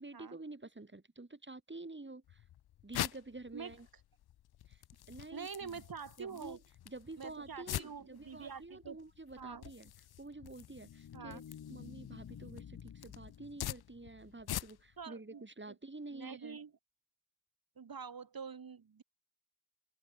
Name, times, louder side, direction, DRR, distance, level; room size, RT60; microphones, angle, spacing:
voice 1, 0.0-2.4 2.8-3.9 4.7-4.8 5.1-5.8 6.2-6.6 6.9-9.9 10.2-11.4 11.7-16.6, right 2 dB, 30° right, 7.4 m, -49 dB
sound 1, 2.3-15.0, left 12 dB, 80° left, 0.6 m, -46 dB
voice 2, 5.3-6.6 7.2-9.0 9.4-9.6 11.1-11.4 15.0-15.4 16.1-16.7 17.8-19.0, right 6 dB, 65° right, 4.9 m, -46 dB
sound 2, 10.3-14.8, left 8 dB, 65° left, 1.2 m, -52 dB
open air
cardioid pair, 50°, 37 cm